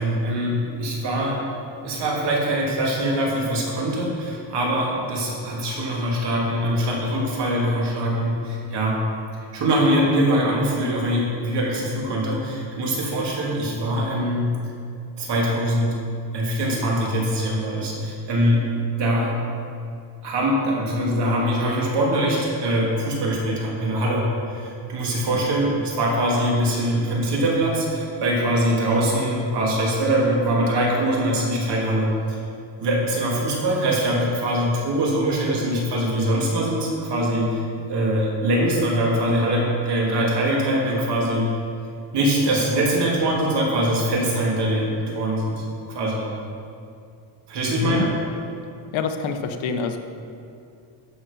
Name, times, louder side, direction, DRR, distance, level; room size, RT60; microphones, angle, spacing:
voice 1, 0.0-1.4 1.8-9.0 9.5-14.5 15.2-16.0 16.3-18.7 18.9-19.3 20.2-32.4 32.8-37.6 37.9-41.5 42.1-46.3 47.5-48.1, right 1 dB, 55° right, -3 dB, 2.9 m, -23 dB
voice 2, 47.8-48.1 48.9-50.0, left 6 dB, 70° left, 7 dB, 1.0 m, -26 dB
13.0 x 7.4 x 5.4 m, 2.5 s
cardioid pair, 155°, 49 cm